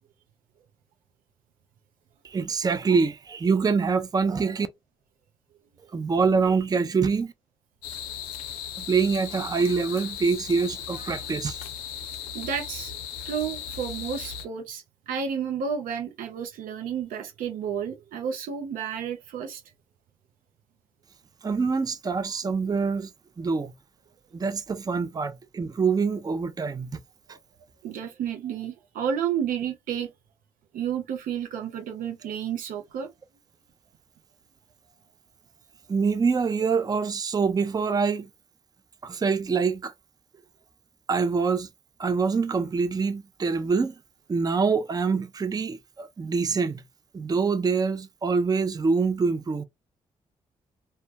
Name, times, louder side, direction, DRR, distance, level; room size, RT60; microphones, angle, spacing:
voice 1, 2.2-4.7 5.9-7.3 8.9-11.6 21.4-23.1 23.4-23.7 24.3-27.0 27.3-27.4 35.9-38.3 39.0-39.9 41.1-41.7 42.0-44.0 44.3-46.8 47.1-49.6, right 5 dB, 25° right, 0.4 m, -25 dB
sound 1, 7.8-14.5, left 8 dB, 85° left, 0.4 m, -37 dB
voice 2, 12.3-12.9 13.3-19.6 27.8-30.1 30.7-33.1, right 7 dB, 75° right, 0.6 m, -31 dB
2.2 x 2.2 x 2.7 m
hypercardioid pair, 45°, 14 cm